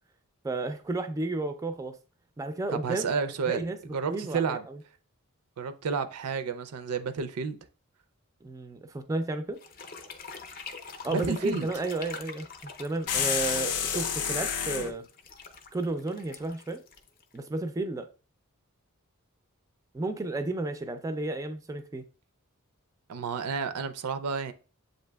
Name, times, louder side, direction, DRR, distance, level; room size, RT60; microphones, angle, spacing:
voice 1, 0.4-1.9 2.4-3.1 3.5-4.8 8.4-9.6 11.0-15.0 15.7-16.8 17.3-18.1 19.9-22.0, right 2 dB, 15° right, 0.3 m, -32 dB
voice 2, 2.7-3.6 3.9-4.7 5.6-7.6 11.1-11.7 23.1-24.5, right 5 dB, 85° right, 0.4 m, -31 dB
sound 1, 9.6-17.6, left 4 dB, 40° left, 0.5 m, -45 dB
sound 2, 13.1-14.9, left 7 dB, 90° left, 0.6 m, -29 dB
7.4 x 2.7 x 2.2 m
head